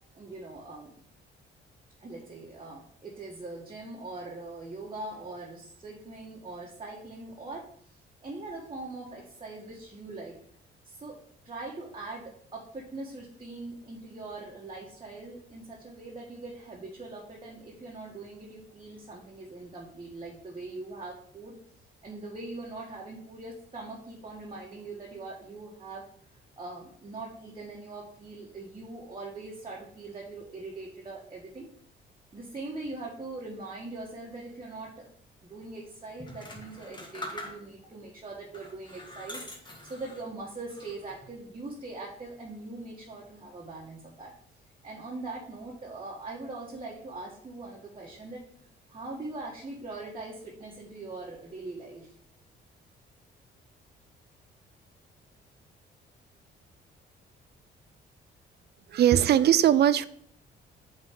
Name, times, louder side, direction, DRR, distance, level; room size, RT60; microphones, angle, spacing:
voice 1, 0.1-1.0 2.0-7.6 8.2-10.3 10.9-11.2 11.4-21.6 22.0-26.0 26.6-31.7 32.3-35.1 35.4-44.3 44.8-48.4 48.9-52.1, right 2 dB, 25° right, -4 dB, 1.5 m, -41 dB
sound 1, 36.2-37.9 38.5-40.3 40.7-41.3, left 1 dB, 25° left, 1.6 m, -43 dB
voice 2, 58.9-60.1, right 10 dB, 55° right, 15 dB, 0.4 m, -20 dB
5.3 x 4.0 x 5.8 m, 0.64 s
cardioid pair, 90°, 20 cm